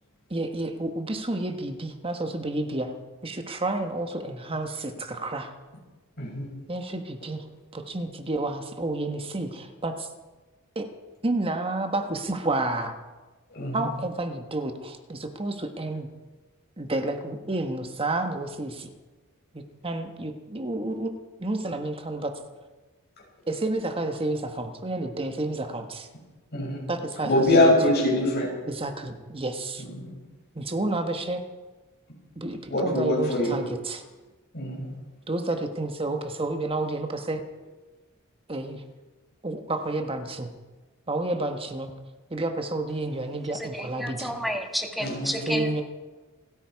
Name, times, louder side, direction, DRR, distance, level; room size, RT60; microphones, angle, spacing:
voice 1, 0.3-2.9 3.2-5.5 6.7-7.5 7.7-10.1 10.7-10.9 11.2-12.9 13.7-16.1 16.8-18.9 19.5-21.1 21.4-22.3 23.5-26.1 26.9-27.7 28.7-29.8 30.5-31.4 32.4-34.0 35.3-37.4 38.5-38.8 39.4-40.5 41.1-41.9 42.3-44.3 45.5-45.8, right 2 dB, 25° right, 6 dB, 1.4 m, -30 dB
voice 2, 27.2-28.5 30.0-30.1 32.7-33.6 34.5-34.9 45.0-45.3, left 1 dB, 50° left, -3 dB, 6.7 m, -23 dB
voice 3, 43.5-45.8, equal, ahead, 3 dB, 1.6 m, -31 dB
29.0 x 9.8 x 4.8 m, 1.2 s
head